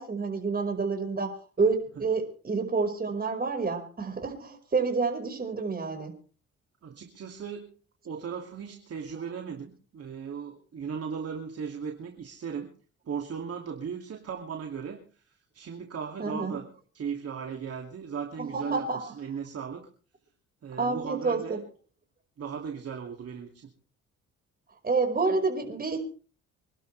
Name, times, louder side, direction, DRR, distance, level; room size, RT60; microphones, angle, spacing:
voice 1, 0.0-6.1 16.2-16.6 18.4-19.1 20.8-21.6 24.8-26.0, right 4 dB, 30° right, 4 dB, 5.3 m, -29 dB
voice 2, 6.8-7.7 8.0-12.7 13.1-15.3 15.5-16.7 16.9-19.8 20.6-21.6 22.4-23.7, right 6 dB, 50° right, 2 dB, 2.6 m, -37 dB
26.5 x 12.0 x 3.4 m, 0.39 s
cardioid pair, 90°, 30 cm